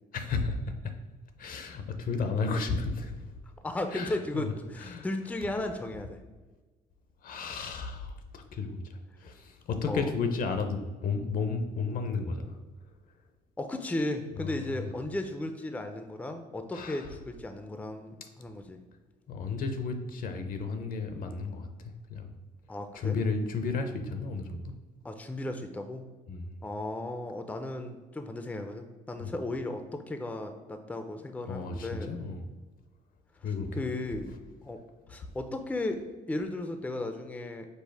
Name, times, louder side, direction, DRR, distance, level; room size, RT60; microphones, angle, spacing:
voice 1, 0.1-0.8 1.4-3.3 3.9-4.5 4.8-5.1 7.2-8.8 9.2-12.6 14.4-14.9 16.7-17.1 19.3-22.3 22.9-24.7 26.3-26.5 29.2-29.3 31.5-32.4 33.4-33.8, left 4 dB, 55° left, 7 dB, 0.6 m, -33 dB
voice 2, 3.6-6.2 9.9-10.1 13.6-18.8 22.7-23.2 25.0-26.0 26.6-32.1 33.8-34.3 34.6-34.8 35.1-36.0 36.3-37.6, left 2 dB, 10° left, 7 dB, 0.4 m, -35 dB
5.3 x 2.0 x 4.5 m, 1.2 s
cardioid pair, 85°, 17 cm